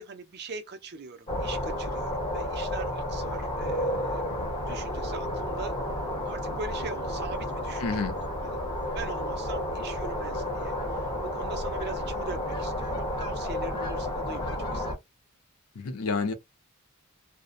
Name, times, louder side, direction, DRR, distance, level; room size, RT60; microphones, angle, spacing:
voice 1, 0.0-4.2 4.6-5.8 6.2-8.2 8.4-8.6 8.9-14.9, right 4 dB, 50° right, 0.5 m, -41 dB
sound 1, 1.3-14.9, left 1 dB, 25° left, 1.0 m, -31 dB
voice 2, 7.8-8.1 15.8-16.3, left 4 dB, 90° left, 0.6 m, -29 dB
2.6 x 2.0 x 2.4 m
head